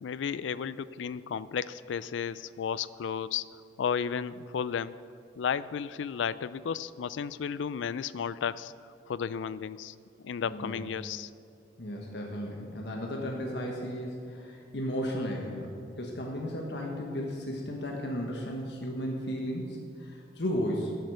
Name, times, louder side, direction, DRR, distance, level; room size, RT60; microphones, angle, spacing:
voice 1, 0.0-3.4 3.8-4.9 5.4-8.7 9.1-9.9 10.2-11.3, left 7 dB, 90° left, 17 dB, 0.4 m, -33 dB
voice 2, 10.4-10.9 11.8-21.0, equal, 70° left, 0 dB, 1.3 m, -34 dB
11.0 x 7.9 x 6.6 m, 2.4 s
head